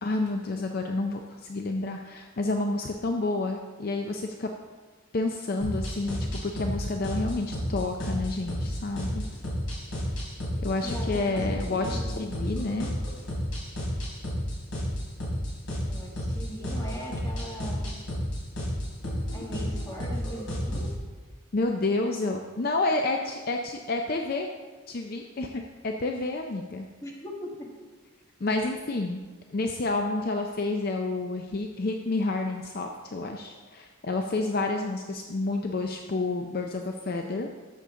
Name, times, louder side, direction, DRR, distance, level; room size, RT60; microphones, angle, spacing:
voice 1, 0.0-4.5 5.1-9.2 10.6-12.9 21.5-24.5 24.9-26.9 28.4-29.2 29.5-37.5, left 2 dB, 45° left, 3 dB, 0.5 m, -29 dB
sound 1, 5.6-21.0, equal, 70° left, 3.3 m, -32 dB
voice 2, 10.8-12.2 15.8-18.0 19.3-20.9 27.0-27.7, equal, 15° left, -2 dB, 1.5 m, -39 dB
12.0 x 7.1 x 3.7 m, 1.4 s
head